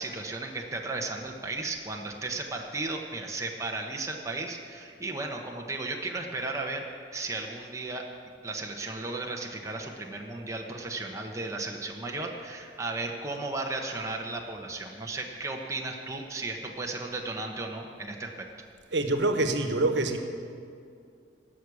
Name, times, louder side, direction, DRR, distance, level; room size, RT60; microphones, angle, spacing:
voice 1, 0.0-6.9 7.1-8.0 8.4-18.5, right 2 dB, 20° right, 0 dB, 1.0 m, -35 dB
voice 2, 18.9-20.2, right 2 dB, 80° right, 6 dB, 1.2 m, -25 dB
17.0 x 6.3 x 8.4 m, 2.4 s
head